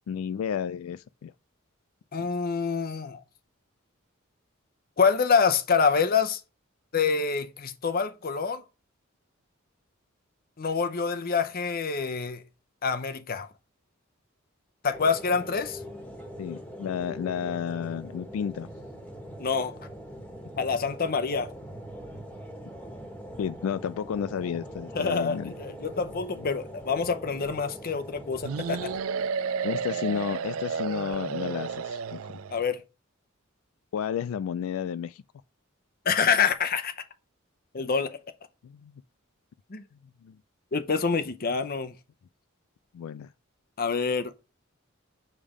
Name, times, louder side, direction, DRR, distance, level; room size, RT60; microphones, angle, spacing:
voice 1, 0.1-1.3 2.2-2.3 16.4-18.7 23.4-25.5 26.4-26.5 29.6-32.2 33.9-35.2 38.6-38.9 40.2-40.4 42.9-43.3, left 8 dB, 85° left, 0.3 m, -32 dB
voice 2, 2.1-3.2 5.0-6.4 6.9-8.6 10.6-12.4 12.8-13.5 14.8-15.8 19.4-19.7 20.6-21.5 24.9-28.9 32.5-32.8 36.1-37.0 37.7-38.2 39.7-39.8 40.7-41.9 43.8-44.3, left 5 dB, 45° left, 0.7 m, -26 dB
sound 1, 14.9-29.0, equal, 5° left, 1.3 m, -42 dB
sound 2, 28.4-32.6, right 6 dB, 80° right, 0.4 m, -32 dB
7.4 x 3.4 x 4.9 m
head